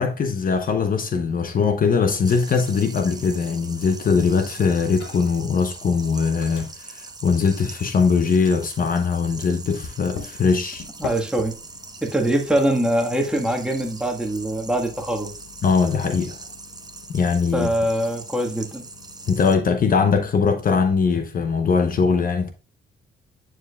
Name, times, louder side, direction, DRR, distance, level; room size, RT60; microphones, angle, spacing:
voice 1, 0.0-10.8 15.6-16.4 17.1-17.7 19.3-22.5, left 5 dB, 45° left, 0.8 m, -21 dB
sound 1, 2.2-19.5, right 3 dB, 20° right, 1.0 m, -41 dB
Microwave oven, 5.0-5.5 5.8-8.0 8.4-19.4, left 5 dB, 85° left, 1.1 m, -44 dB
voice 2, 11.0-11.5 12.0-15.3 17.5-18.8, right 1 dB, 5° right, 1.5 m, -23 dB
9.1 x 4.7 x 2.3 m
cardioid pair, 90°, 20 cm